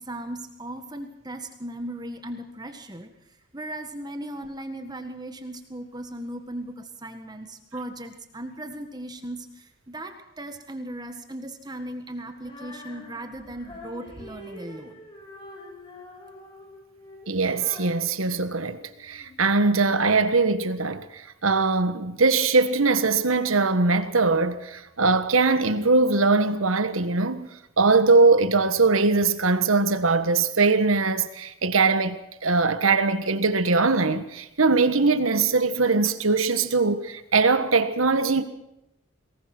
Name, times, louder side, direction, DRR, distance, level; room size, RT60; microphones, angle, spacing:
voice 1, 0.0-3.1 3.5-15.0, right 1 dB, 20° right, 1.7 m, -37 dB
Female singing, 12.3-19.4, left 1 dB, 25° left, 6.7 m, -45 dB
voice 2, 17.3-27.5 27.8-38.4, right 3 dB, 85° right, 1.5 m, -21 dB
22.5 x 19.5 x 6.2 m
head